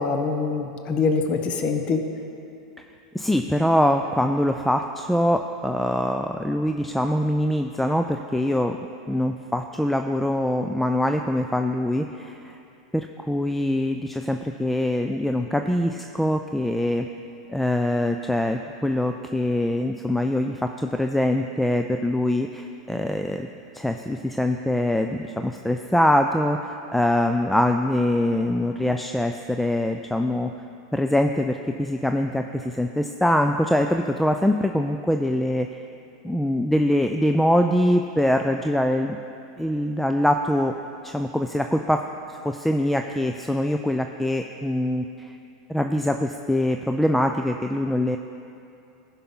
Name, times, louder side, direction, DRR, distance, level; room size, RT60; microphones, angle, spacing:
voice 1, 0.0-2.0, left 4 dB, 40° left, 5 dB, 0.8 m, -24 dB
voice 2, 3.1-8.8 9.1-12.6 12.9-17.1 17.5-23.5 23.7-30.5 30.9-35.7 36.2-39.2 39.6-40.7 41.0-42.0 42.4-45.4 45.7-48.2, left 1 dB, 5° left, 5 dB, 0.4 m, -23 dB
15.0 x 5.8 x 3.7 m, 2.7 s
hypercardioid pair, 100°, 3 cm